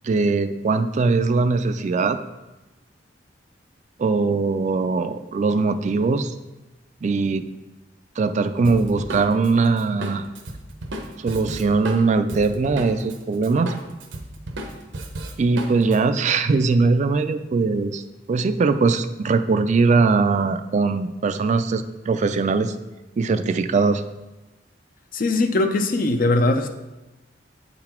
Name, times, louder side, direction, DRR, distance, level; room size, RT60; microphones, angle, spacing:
voice 1, 0.0-2.2 4.0-6.3 7.0-7.5 8.2-10.2 11.2-13.7 15.4-18.0 18.3-22.7 23.2-24.0, right 4 dB, 40° right, 10 dB, 0.3 m, -21 dB
Drum kit, 8.6-13.2 13.4-16.0, right 1 dB, 80° right, 0.9 m, -34 dB
voice 2, 25.1-26.7, left 2 dB, 50° left, 7 dB, 0.6 m, -20 dB
8.5 x 4.0 x 4.3 m, 1.0 s
head